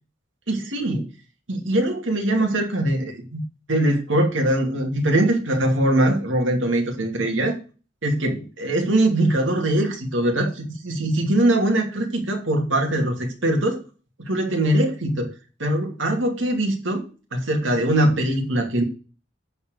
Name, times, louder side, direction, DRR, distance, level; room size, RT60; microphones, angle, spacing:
voice 1, 0.5-1.1 1.5-3.4 3.7-7.6 8.0-13.8 14.2-15.3 15.6-17.0 17.3-18.8, right 1 dB, 85° right, 2 dB, 2.6 m, -22 dB
10.5 x 4.5 x 6.6 m, 0.35 s
head